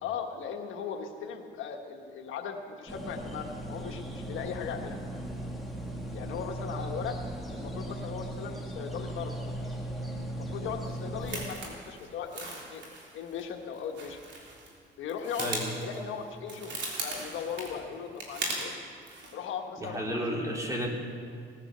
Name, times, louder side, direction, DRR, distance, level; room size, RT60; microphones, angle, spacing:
voice 1, 0.0-5.0 6.1-7.2 7.5-9.5 10.3-12.8 13.1-14.2 15.0-18.7 19.3-20.4, left 7 dB, 80° left, 4 dB, 1.3 m, -38 dB
sound 1, 2.9-11.4, right 1 dB, ahead, 2.2 m, -38 dB
sound 2, 10.9-14.8 15.0-18.7 19.0-19.3, right 2 dB, 65° right, 3.6 m, -39 dB
voice 2, 19.8-20.9, equal, 15° right, -2 dB, 3.3 m, -32 dB
18.5 x 9.9 x 6.7 m, 2.2 s
cardioid pair, 90°, 20 cm